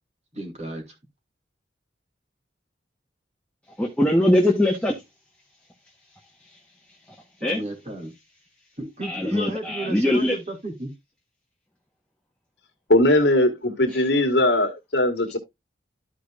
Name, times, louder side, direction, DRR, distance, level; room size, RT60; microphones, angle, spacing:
voice 1, 0.3-0.9 7.4-8.1 8.8-10.9, right 1 dB, 35° right, 2.7 m, -33 dB
voice 2, 3.8-4.9 7.4-7.6 9.0-10.4 13.9-14.1, left 1 dB, 5° left, 1.1 m, -21 dB
voice 3, 12.9-15.4, left 1 dB, 70° left, 1.8 m, -20 dB
13.5 x 5.0 x 2.4 m
head